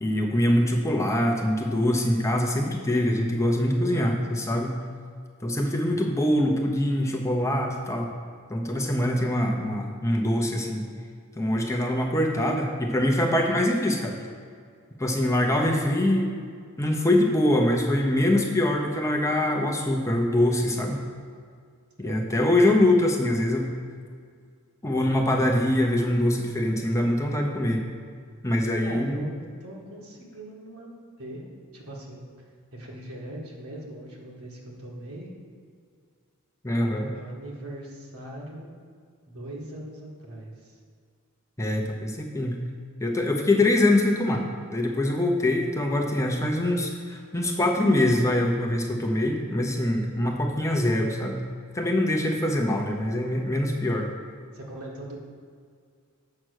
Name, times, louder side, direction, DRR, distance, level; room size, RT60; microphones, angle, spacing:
voice 1, 0.0-4.8 5.4-8.1 8.5-10.9 11.4-14.2 15.0-16.3 16.8-21.0 22.0-23.7 24.8-27.8 28.4-29.3 36.6-37.1 41.6-42.6 43.0-44.4 44.7-51.5 51.7-54.1, left 1 dB, 15° left, 1 dB, 0.7 m, -24 dB
voice 2, 3.8-4.2 5.6-5.9 22.0-22.3 28.8-31.4 31.7-32.5 32.7-35.3 36.8-38.7 39.3-40.8 53.0-53.5 54.5-55.2, right 1 dB, 70° right, -2 dB, 1.8 m, -41 dB
7.6 x 5.8 x 6.4 m, 2.1 s
head